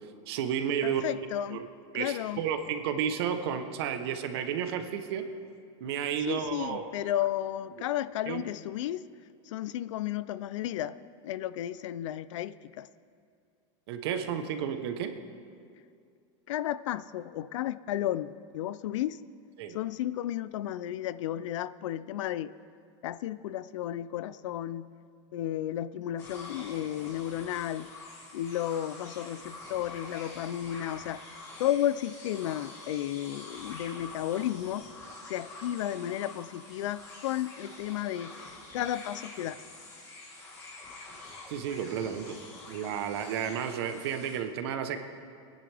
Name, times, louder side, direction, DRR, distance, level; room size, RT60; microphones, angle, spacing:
voice 1, 0.3-1.1 1.5-1.7 1.9-5.3 5.8-6.9 8.3-8.4 13.9-15.1 19.6-19.8 41.5-42.4 42.7-45.0, right 8 dB, 55° right, 8 dB, 1.0 m, -32 dB
voice 2, 0.8-1.6 1.9-2.4 6.3-9.0 9.5-11.0 11.2-12.9 16.5-19.2 19.7-22.5 23.0-24.9 25.3-27.9 28.3-31.2 31.6-34.9 35.2-39.6, left 12 dB, 80° left, 16 dB, 0.5 m, -33 dB
sound 1, 26.2-44.4, left 2 dB, 20° left, 1.5 m, -46 dB
22.5 x 10.5 x 3.4 m, 2.3 s
supercardioid pair, 175°, 16 cm